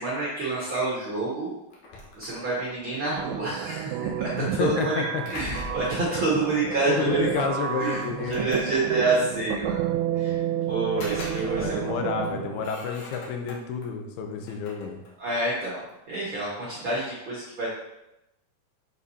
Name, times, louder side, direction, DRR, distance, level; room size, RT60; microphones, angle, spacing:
voice 1, 0.0-1.5 2.1-3.9 4.2-5.0 5.3-7.3 7.8-9.8 10.1-10.4 10.7-11.8 12.1-12.2 15.2-15.8 16.1-17.7, right 3 dB, 50° right, -7 dB, 1.5 m, -28 dB
sound 1, 1.7-2.8 4.8-6.1 7.4-7.5 8.0-9.1 10.7-11.9 12.2-13.9 14.4-16.0, left 2 dB, 65° left, 2.3 m, -42 dB
sound 2, 3.2-12.7, right 10 dB, 85° right, 2.4 m, -31 dB
voice 2, 4.4-5.2 6.3-6.5 6.9-8.5 11.5-15.0, left 6 dB, 85° left, 4 dB, 2.7 m, -30 dB
7.5 x 6.6 x 2.7 m, 0.91 s
omnidirectional pair, 4.4 m